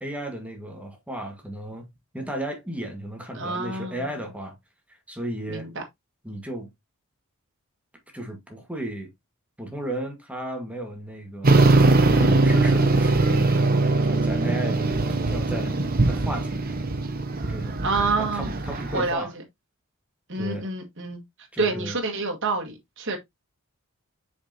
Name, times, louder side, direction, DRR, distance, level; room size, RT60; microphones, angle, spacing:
voice 1, 0.0-1.9 2.1-4.5 4.9-5.7 6.2-6.7 8.1-9.1 9.6-11.8 12.1-13.7 14.0-15.8 16.1-16.8 17.5-17.8 18.2-19.3 20.3-20.7 21.5-21.9, right 1 dB, 5° right, 1.5 m, -34 dB
voice 2, 3.3-4.1 5.5-5.8 12.2-12.6 17.8-18.6 18.9-19.4 20.3-21.2 21.6-23.2, right 3 dB, 60° right, 1.7 m, -28 dB
sound 1, 11.4-19.1, right 2 dB, 45° right, 1.1 m, -21 dB
6.7 x 5.2 x 2.7 m
head